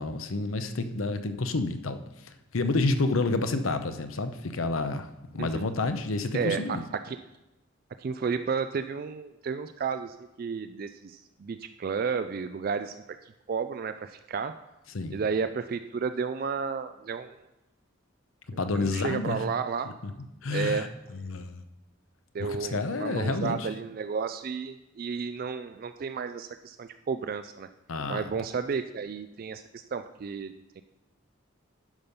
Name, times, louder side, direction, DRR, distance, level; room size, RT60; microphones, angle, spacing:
voice 1, 0.0-2.0 2.5-5.1 5.3-6.8 14.9-15.2 18.5-19.4 20.4-20.9 21.2-21.6 22.4-23.7 27.9-28.3, left 3 dB, 85° left, 9 dB, 0.7 m, -29 dB
voice 2, 5.4-5.7 6.3-6.8 7.1-7.2 8.0-13.0 13.2-14.6 15.1-17.4 18.7-19.9 20.5-20.9 22.3-27.7 28.1-30.5, right 5 dB, 45° right, 10 dB, 0.3 m, -32 dB
11.0 x 5.4 x 5.3 m, 0.98 s
head